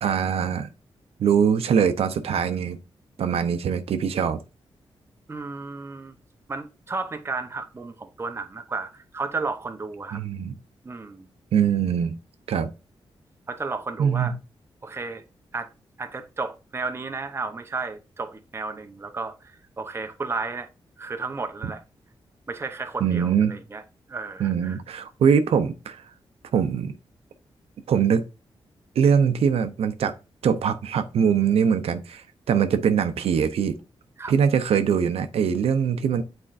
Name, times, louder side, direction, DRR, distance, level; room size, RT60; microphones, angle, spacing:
voice 1, 0.0-0.7 1.2-2.8 3.2-4.4 10.1-10.5 11.5-12.1 12.5-12.7 14.0-14.3 23.0-23.6 24.4-26.0 26.5-26.9 27.9-28.2 29.0-30.1 30.4-33.7 34.3-36.2, right 7 dB, 85° right, 0.6 m, -22 dB
voice 2, 5.3-6.1 6.5-10.2 10.8-11.3 13.5-14.3 14.8-15.2 15.5-15.7 16.0-20.7 21.0-21.8 22.5-23.8 24.1-24.8 34.2-34.3, right 4 dB, 25° right, 0.8 m, -33 dB
8.6 x 4.3 x 2.5 m
wide cardioid pair, 125°, 10 cm